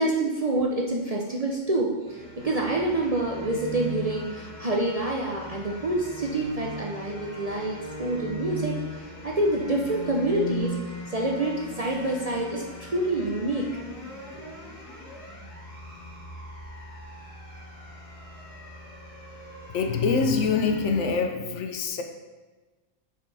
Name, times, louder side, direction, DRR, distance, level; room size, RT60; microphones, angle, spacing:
voice 1, 0.0-1.9 2.4-10.8 11.1-13.7 14.3-14.5, right 2 dB, 40° right, -2 dB, 0.6 m, -27 dB
sound 1, 2.1-21.1, equal, 25° left, 2.1 m, -39 dB
voice 2, 19.7-22.0, left 5 dB, 70° left, 5 dB, 0.9 m, -25 dB
9.0 x 4.9 x 3.4 m, 1.3 s
omnidirectional pair, 1.4 m